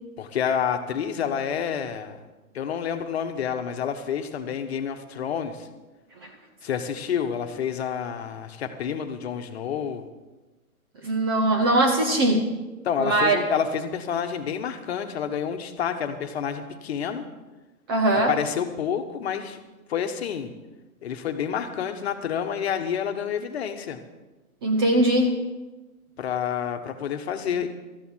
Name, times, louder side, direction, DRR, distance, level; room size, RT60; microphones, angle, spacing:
voice 1, 0.2-2.2 2.5-5.7 6.6-10.0 12.8-17.2 18.3-19.6 19.9-20.5 21.0-24.0 26.2-27.7, left 8 dB, 45° left, 7 dB, 1.3 m, -29 dB
voice 2, 11.0-12.5 13.0-13.4 17.9-18.3 24.6-25.3, right 1 dB, 15° right, 3 dB, 0.6 m, -21 dB
13.5 x 9.9 x 6.3 m, 1.1 s
hypercardioid pair, 145°, 44 cm